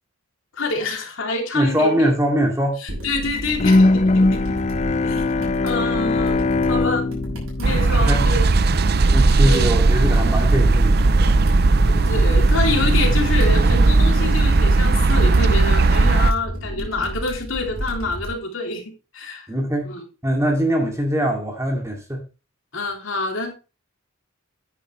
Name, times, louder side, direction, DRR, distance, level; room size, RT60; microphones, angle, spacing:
voice 1, 0.6-2.1 2.8-4.4 5.0-5.2 5.6-6.4 6.7-7.1 7.6-8.5 9.5-9.7 11.9-19.5 19.8-20.0 22.7-23.5, left 3 dB, 70° left, 3.0 m, -27 dB
voice 2, 1.5-2.8 6.6-6.7 7.9-8.3 9.1-11.3 19.5-19.9 20.2-22.2, equal, 15° right, 2.4 m, -22 dB
sound 1, 2.9-18.3, equal, 80° right, 6.2 m, -32 dB
Bowed string instrument, 3.6-8.7, left 2 dB, 30° left, 0.4 m, -20 dB
sound 2, 7.6-16.3, right 3 dB, 50° right, 0.5 m, -16 dB
9.9 x 9.8 x 3.2 m
head